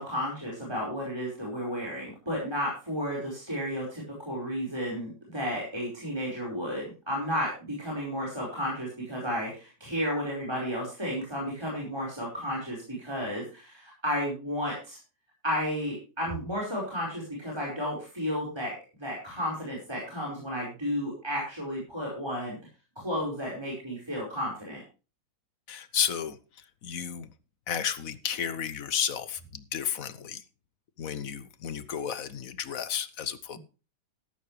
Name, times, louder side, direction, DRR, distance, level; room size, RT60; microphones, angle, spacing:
voice 1, 0.0-15.0 15.4-18.7 19.0-22.6 22.9-24.8, equal, 15° right, 4.8 m, -32 dB
voice 2, 25.7-26.4 26.8-27.3 27.7-30.4 31.0-33.6, left 8 dB, 60° left, 1.2 m, -32 dB
13.5 x 12.5 x 3.2 m
omnidirectional pair, 1.9 m